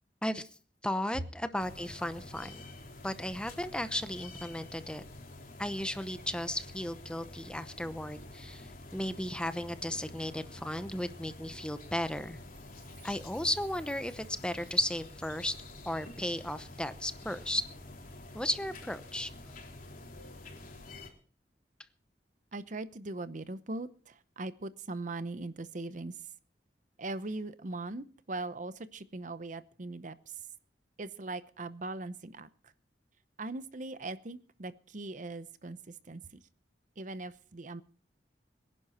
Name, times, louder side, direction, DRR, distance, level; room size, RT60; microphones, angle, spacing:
voice 1, 0.8-2.6 3.0-5.0 5.6-12.4 13.0-15.5 15.8-17.6 18.3-19.3, left 1 dB, 5° left, 11 dB, 0.8 m, -35 dB
sound 1, 1.6-21.1, left 2 dB, 50° left, 3.7 m, -48 dB
Chime, 12.3-15.9 16.2-16.3, right 8 dB, 75° right, 3.6 m, -63 dB
voice 2, 22.5-26.1 27.0-30.4 31.0-32.7 33.4-36.4 37.0-37.8, right 2 dB, 45° right, 14 dB, 0.8 m, -40 dB
23.5 x 11.0 x 4.3 m, 0.41 s
head